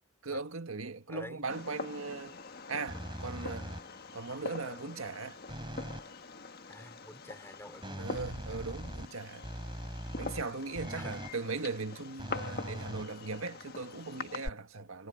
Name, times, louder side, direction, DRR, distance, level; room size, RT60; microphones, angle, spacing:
voice 1, 0.2-2.4 2.7-3.7 4.1-5.4 8.0-9.5 10.2-15.1, right 3 dB, 80° right, 1.6 m, -39 dB
voice 2, 1.1-1.6 6.7-8.1 10.9-11.1, left 1 dB, 10° left, 4.4 m, -48 dB
Fireworks, 1.5-14.5, left 3 dB, 45° left, 1.4 m, -44 dB
sound 1, 2.9-4.1 5.5-6.1 7.8-11.4 12.2-13.7, equal, 25° right, 4.2 m, -42 dB
head